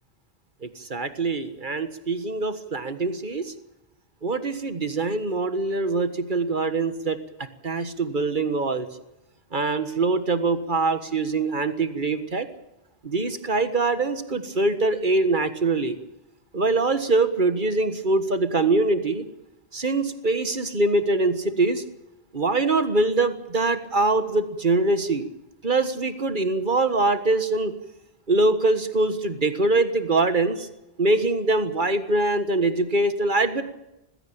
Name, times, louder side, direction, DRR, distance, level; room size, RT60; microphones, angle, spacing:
voice 1, 0.6-3.5 4.2-7.2 7.6-8.9 9.5-12.5 13.0-16.0 16.5-19.2 19.7-21.8 22.3-25.2 25.6-27.7 28.3-30.7 31.0-33.6, right 3 dB, 50° right, 10 dB, 1.7 m, -23 dB
21.0 x 16.0 x 8.8 m, 0.90 s
omnidirectional pair, 1.0 m